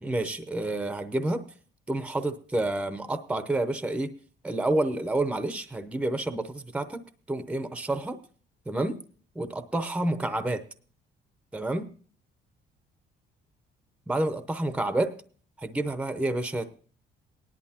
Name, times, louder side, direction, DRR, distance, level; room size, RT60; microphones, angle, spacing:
voice 1, 0.0-1.5 1.9-4.1 4.4-7.0 7.3-8.2 8.7-9.0 9.3-10.6 11.5-11.9 14.1-15.2 15.6-16.8, right 2 dB, 5° right, 11 dB, 0.7 m, -29 dB
18.5 x 11.0 x 2.9 m, 0.43 s
cardioid pair, 130°, 19 cm